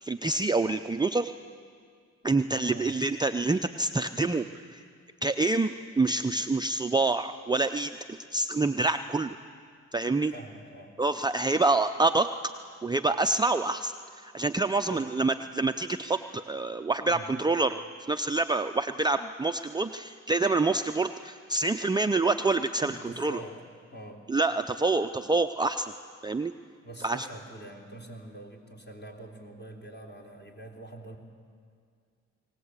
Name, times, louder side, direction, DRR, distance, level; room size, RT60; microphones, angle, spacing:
voice 1, 0.0-1.3 2.2-4.8 5.2-9.4 9.9-10.3 11.0-12.3 12.8-17.8 18.1-23.4 24.3-25.9 26.2-26.5 27.0-27.3, right 3 dB, 15° right, 7 dB, 0.5 m, -27 dB
voice 2, 10.3-10.9 14.9-15.1 17.0-17.3 22.8-23.6 23.9-24.3 26.8-31.2, right 2 dB, 35° left, 1 dB, 3.5 m, -44 dB
20.5 x 18.0 x 8.2 m, 2.1 s
cardioid pair, 80°, 31 cm